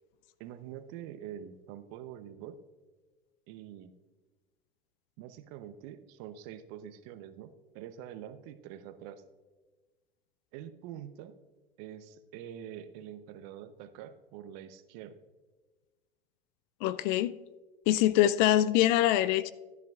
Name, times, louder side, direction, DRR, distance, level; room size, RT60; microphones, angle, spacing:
voice 1, 0.4-2.6 3.5-3.9 5.2-9.2 10.5-11.3 11.8-15.2, right 10 dB, 50° right, 0.8 m, -45 dB
voice 2, 16.8-17.3 17.9-19.5, left 13 dB, 50° left, 0.4 m, -24 dB
13.0 x 10.5 x 2.4 m
hypercardioid pair, 95°, 30 cm